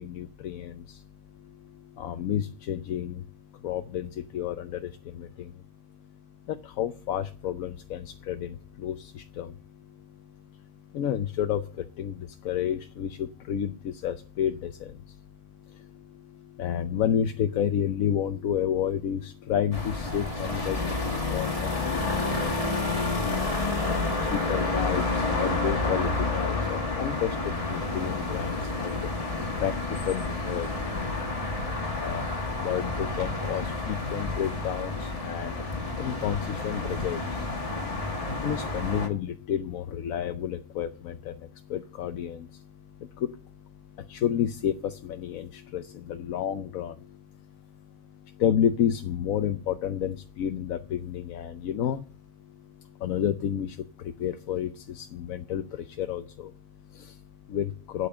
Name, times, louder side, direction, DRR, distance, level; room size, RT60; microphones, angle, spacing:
voice 1, 0.0-58.1, left 9 dB, 85° left, 8 dB, 1.2 m, -32 dB
sound 1, 19.7-39.1, left 3 dB, 25° left, 2.0 m, -30 dB
sound 2, 19.7-34.4, left 2 dB, 55° right, 5.6 m, -44 dB
8.6 x 8.4 x 8.8 m, 0.39 s
omnidirectional pair, 1.4 m